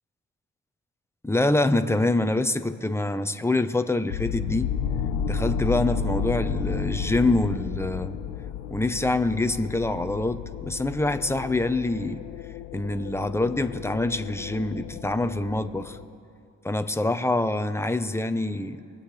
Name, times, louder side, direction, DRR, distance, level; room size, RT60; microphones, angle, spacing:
voice 1, 1.2-4.7 5.2-8.2 8.7-12.2 12.7-16.0 16.6-18.8, left 2 dB, 5° left, 10 dB, 0.9 m, -25 dB
sound 1, 4.1-16.0, left 6 dB, 85° left, 0.6 m, -32 dB
23.0 x 8.8 x 3.3 m, 2.4 s
hypercardioid pair, 45°, 39 cm